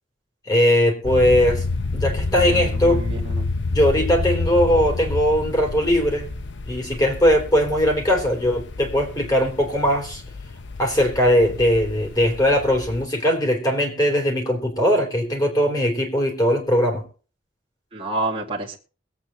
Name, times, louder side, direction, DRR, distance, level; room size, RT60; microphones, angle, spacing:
voice 1, 0.5-1.6 1.9-3.0 3.7-6.3 6.7-10.2 10.8-17.0, equal, 20° left, 0 dB, 3.6 m, -20 dB
sound 1, 1.0-13.0, left 3 dB, 70° left, 0.7 m, -29 dB
voice 2, 2.5-3.5 17.9-18.8, right 2 dB, 30° right, -3 dB, 2.1 m, -29 dB
22.5 x 8.6 x 3.0 m, 0.37 s
head